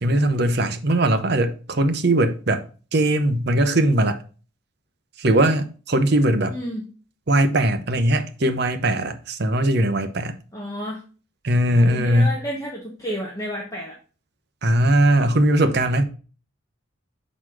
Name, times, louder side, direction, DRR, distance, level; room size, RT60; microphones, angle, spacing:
voice 1, 0.0-2.6 2.9-4.2 5.2-6.5 7.3-10.4 11.4-12.4 14.6-16.0, right 1 dB, 50° right, 0.8 m, -20 dB
voice 2, 6.5-6.9 10.5-11.0 11.8-14.0, equal, 15° left, 1.0 m, -31 dB
6.2 x 4.0 x 4.7 m
head